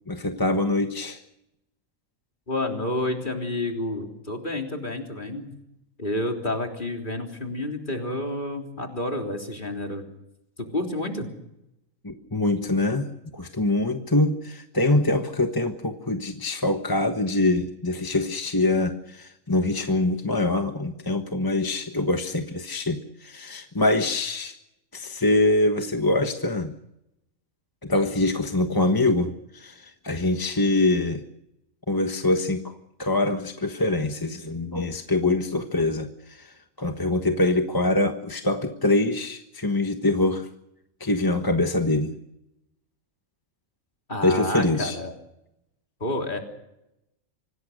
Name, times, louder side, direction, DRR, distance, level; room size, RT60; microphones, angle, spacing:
voice 1, 0.1-1.2 12.0-24.5 24.9-26.7 27.8-31.2 31.9-32.7 33.0-40.5 41.0-42.2 44.2-45.0, left 2 dB, 15° left, 5 dB, 1.3 m, -24 dB
voice 2, 2.5-5.5 6.0-10.0 10.6-11.3 44.1-45.1 46.0-46.4, left 1 dB, 40° left, 3 dB, 3.6 m, -29 dB
25.5 x 18.5 x 6.6 m, 0.83 s
omnidirectional pair, 1.4 m